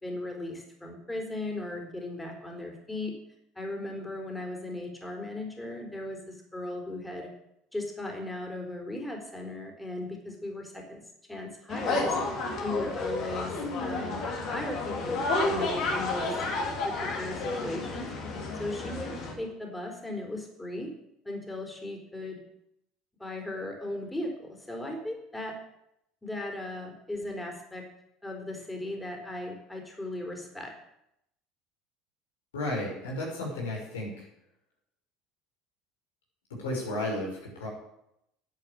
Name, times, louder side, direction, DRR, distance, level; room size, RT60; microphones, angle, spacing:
voice 1, 0.0-3.2 3.6-7.3 7.7-11.0 11.3-12.2 12.6-16.4 16.8-18.1 18.6-20.9 21.2-22.4 23.2-25.6 26.2-27.9 28.2-30.7, left 1 dB, 10° left, 2 dB, 4.1 m, -37 dB
sound 1, 11.7-19.3, left 2 dB, 60° left, 3.5 m, -31 dB
voice 2, 32.5-34.3 36.5-37.7, left 1 dB, 85° left, -2 dB, 5.9 m, -33 dB
10.5 x 8.7 x 8.7 m, 0.80 s
hypercardioid pair, 75°, 0 cm